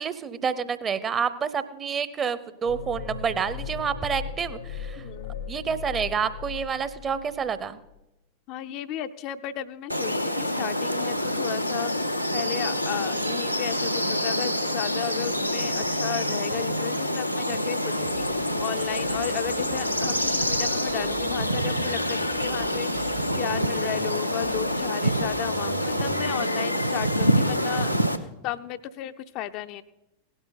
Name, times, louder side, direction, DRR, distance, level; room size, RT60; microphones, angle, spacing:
voice 1, 0.0-5.0 5.5-7.8, right 6 dB, 25° right, 14 dB, 0.8 m, -28 dB
sound 1, 2.6-7.6 7.9-8.0, left 6 dB, 70° left, 1.0 m, -37 dB
voice 2, 5.0-5.3 8.5-28.0 28.4-29.8, left 12 dB, 40° left, 10 dB, 0.5 m, -34 dB
sound 2, 9.9-28.2, equal, 90° left, 0.7 m, -26 dB
sound 3, 18.0-26.3, right 9 dB, 55° right, 1.0 m, -43 dB
17.0 x 12.0 x 4.1 m, 0.92 s
figure-of-eight pair, 90°, 0 cm